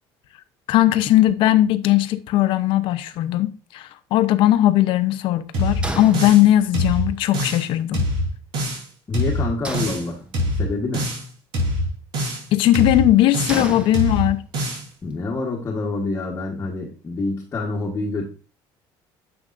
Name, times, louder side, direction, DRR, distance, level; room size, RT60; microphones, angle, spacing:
voice 1, 0.7-8.0 12.5-14.4, left 14 dB, 65° left, 0.8 m, -18 dB
sound 1, 5.5-6.5 6.7-7.7 7.9-8.9 9.1-10.1 10.3-11.3 11.5-12.5 12.7-13.7 13.9-14.9, equal, 70° right, 3.8 m, -24 dB
sound 2, 5.8-6.9 9.6-10.7 13.5-14.6, right 1 dB, 10° right, 1.0 m, -32 dB
voice 2, 9.1-10.2 10.5-11.1 15.0-18.2, left 3 dB, 25° left, 1.5 m, -27 dB
9.9 x 7.1 x 2.6 m
cardioid pair, 140°, 10 cm